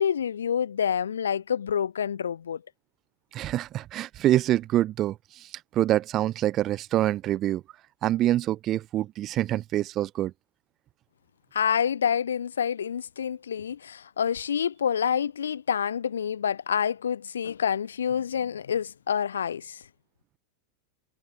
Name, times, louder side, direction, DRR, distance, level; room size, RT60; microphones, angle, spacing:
voice 1, 0.0-2.6 11.5-19.8, left 8 dB, 65° left, 1.0 m, -27 dB
voice 2, 3.3-7.6 8.0-10.3, right 13 dB, 35° right, 0.7 m, -26 dB
figure-of-eight pair, 90°, 0 cm